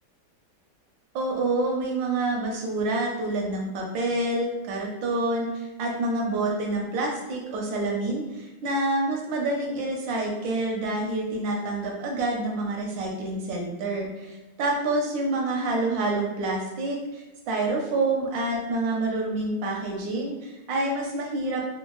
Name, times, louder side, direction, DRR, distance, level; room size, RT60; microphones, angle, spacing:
voice 1, 1.1-21.6, right 2 dB, 75° right, 0 dB, 1.1 m, -27 dB
3.6 x 2.2 x 2.9 m, 1.1 s
omnidirectional pair, 2.4 m